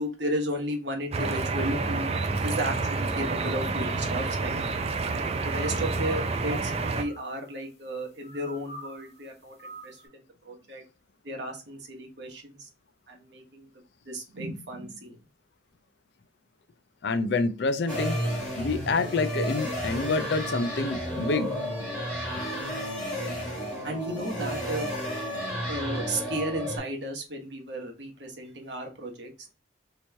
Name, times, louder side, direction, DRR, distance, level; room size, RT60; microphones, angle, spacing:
voice 1, 0.0-4.6 5.0-10.8 11.2-12.7 13.1-13.7 14.1-15.2 23.8-24.9 25.7-29.5, right 1 dB, 65° right, 1.0 m, -34 dB
sound 1, 1.1-7.0, right 3 dB, 35° right, 0.4 m, -29 dB
sound 2, 5.4-6.4 6.7-7.6 8.2-9.3 9.6-10.1, equal, 35° left, 1.3 m, -47 dB
voice 2, 17.0-18.2 18.5-21.5 22.3-22.5, left 3 dB, 65° left, 0.4 m, -27 dB
sound 3, 17.9-26.8, equal, 5° left, 1.4 m, -32 dB
3.0 x 2.8 x 3.3 m
head